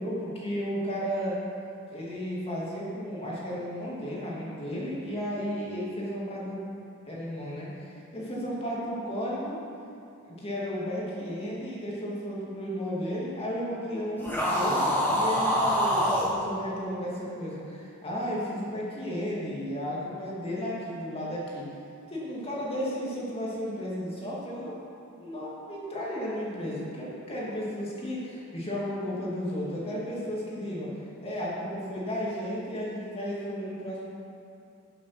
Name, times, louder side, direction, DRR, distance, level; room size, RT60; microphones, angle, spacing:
voice 1, 0.0-1.4 1.9-6.6 7.1-9.6 10.2-21.7 22.1-24.8 25.2-30.9 31.2-34.0, equal, 25° left, -5 dB, 2.5 m, -33 dB
sound 1, 14.2-16.3, equal, 10° left, 1.6 m, -25 dB
12.0 x 7.4 x 5.8 m, 2.6 s
head